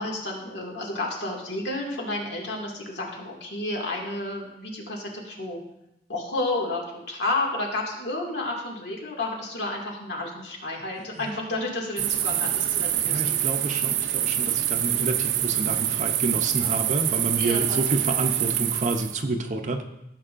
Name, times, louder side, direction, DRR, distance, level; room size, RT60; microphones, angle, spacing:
voice 1, 0.0-5.6 6.1-6.8 7.1-13.3 17.4-18.0, left 2 dB, 75° left, -1 dB, 2.1 m, -31 dB
sound 1, 12.0-19.2, right 11 dB, 85° right, 0.6 m, -25 dB
voice 2, 13.0-19.8, right 2 dB, 40° right, 4 dB, 0.6 m, -29 dB
15.5 x 7.5 x 2.5 m, 0.85 s
head